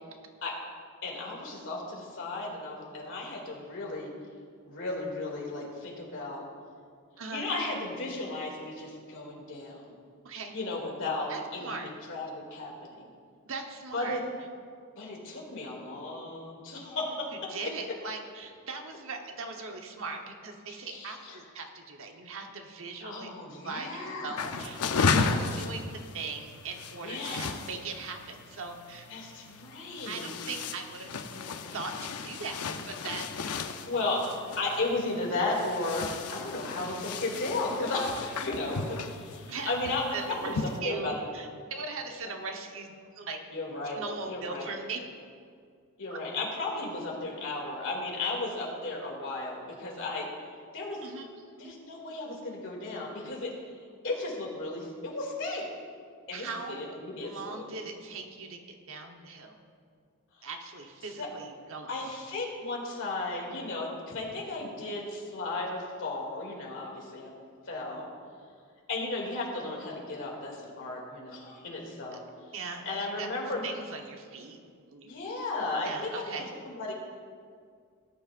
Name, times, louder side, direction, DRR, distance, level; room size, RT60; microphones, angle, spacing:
voice 1, 1.0-4.1 4.7-6.4 7.3-9.9 10.5-13.1 13.9-14.2 15.0-17.5 20.7-21.4 23.0-24.6 25.1-25.5 27.0-27.5 29.1-30.3 31.3-31.5 33.8-34.3 34.6-36.0 36.3-41.3 43.5-44.7 46.0-50.3 50.7-51.0 51.6-53.5 54.0-55.6 56.3-57.6 60.4-60.5 61.2-61.3 61.9-67.3 67.7-68.1 68.9-72.2 72.8-73.6 75.0-76.9, left 2 dB, 60° left, -2 dB, 2.5 m, -35 dB
voice 2, 10.2-10.6 11.3-11.9 13.4-14.2 17.5-23.3 23.6-24.8 25.2-29.1 30.0-31.1 31.7-31.9 32.2-32.6 32.9-33.3 39.5-39.7 40.1-43.4 44.0-45.0 46.1-46.2 51.0-51.3 51.6-51.7 56.3-57.0 57.2-58.6 58.9-59.6 60.4-62.0 72.5-74.6 74.9-75.1 75.8-76.5, right 4 dB, 65° right, 3 dB, 1.1 m, -39 dB
sound 1, 24.4-40.8, left 4 dB, 85° left, 0.6 m, -35 dB
18.0 x 10.0 x 2.6 m, 2.1 s
head